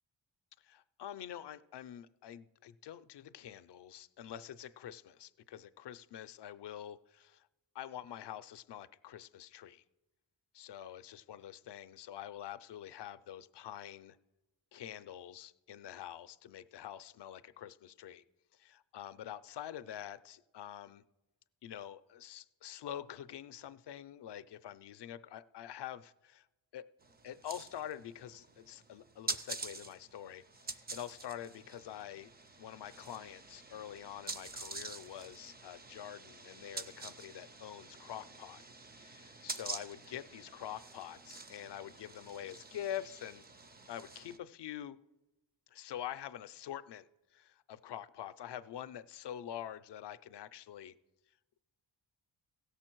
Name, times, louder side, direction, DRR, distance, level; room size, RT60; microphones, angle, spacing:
voice 1, 0.6-7.5 7.7-9.8 10.5-14.2 14.7-18.2 18.5-21.0 21.6-26.5 26.7-26.8 27.2-32.3 32.6-38.6 39.0-43.5 43.9-45.0 45.7-50.9, left 10 dB, 65° left, 14 dB, 0.5 m, -46 dB
sound 1, 27.0-44.4, right 3 dB, 25° right, 0.4 m, -47 dB
16.5 x 6.9 x 4.5 m, 1.0 s
wide cardioid pair, 170°, 45 cm